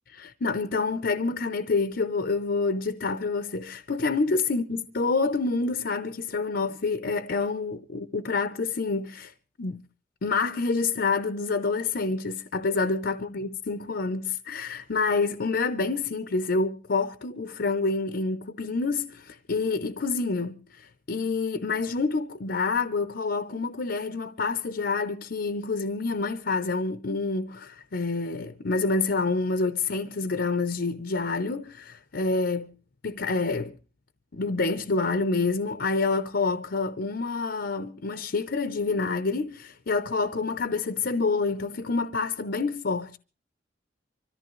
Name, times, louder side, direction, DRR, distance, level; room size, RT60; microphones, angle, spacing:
voice 1, 0.1-9.3 9.6-9.8 10.2-32.7 33.0-33.7 34.3-43.2, left 3 dB, 60° left, 0.7 m, -27 dB
25.5 x 14.0 x 3.1 m
head